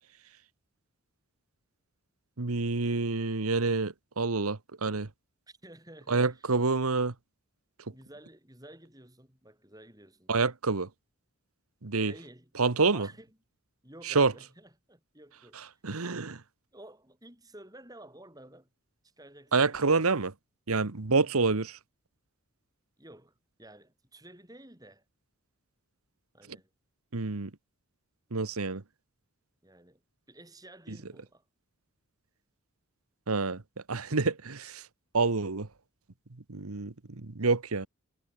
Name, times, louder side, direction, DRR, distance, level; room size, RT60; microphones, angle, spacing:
voice 1, 2.4-5.1 6.1-7.1 10.3-10.9 11.8-12.1 12.6-13.1 14.1-14.3 15.8-16.4 19.5-20.3 20.7-21.8 27.1-27.5 28.3-28.8 30.9-31.0 33.3-33.6 33.9-34.8 35.1-35.7 36.5-37.9, right 4 dB, 90° right, 1.3 m, -27 dB
voice 2, 5.5-6.5 7.9-10.3 12.0-12.5 12.8-13.4 13.8-15.8 16.7-18.7 19.0-19.8 21.1-21.3 23.0-25.0 26.3-26.7 29.6-30.0 30.3-31.5, right 1 dB, 15° right, 7.5 m, -52 dB
head